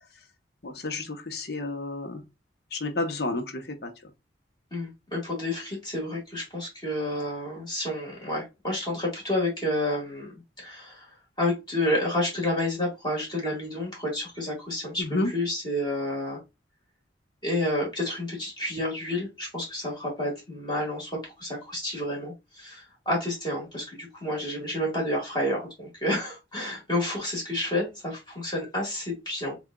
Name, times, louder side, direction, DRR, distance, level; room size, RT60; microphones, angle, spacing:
voice 1, 0.6-2.2 2.7-3.9 15.0-15.3, left 2 dB, 55° left, 1.0 m, -30 dB
voice 2, 4.7-10.3 10.6-11.1 11.4-15.0 15.3-16.4 17.4-29.5, left 1 dB, 25° left, 1.9 m, -30 dB
6.9 x 2.4 x 2.3 m
head